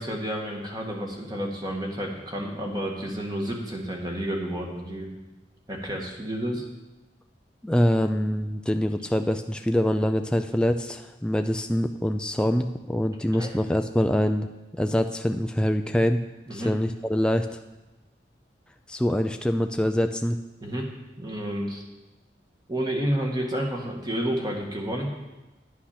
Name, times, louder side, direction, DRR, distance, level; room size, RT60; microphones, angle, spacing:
voice 1, 0.0-5.1 5.7-6.6 13.3-13.5 16.5-16.7 20.6-20.9 21.2-21.8 22.7-25.1, equal, 25° right, 0 dB, 1.7 m, -30 dB
voice 2, 7.6-16.2 16.5-17.5 18.9-20.4, equal, 5° left, 5 dB, 0.4 m, -25 dB
10.0 x 8.5 x 5.8 m, 1.1 s
head